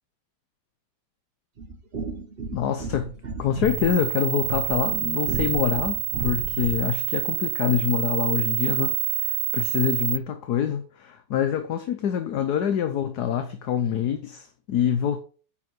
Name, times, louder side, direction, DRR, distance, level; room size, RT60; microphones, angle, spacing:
sound 1, 1.6-7.0, right 3 dB, 35° right, 1.1 m, -33 dB
voice 1, 2.5-3.1 3.4-15.2, left 9 dB, 60° left, 1.2 m, -26 dB
sound 2, 3.6-10.2, right 15 dB, 75° right, 1.0 m, -28 dB
9.6 x 5.7 x 6.1 m
omnidirectional pair, 2.3 m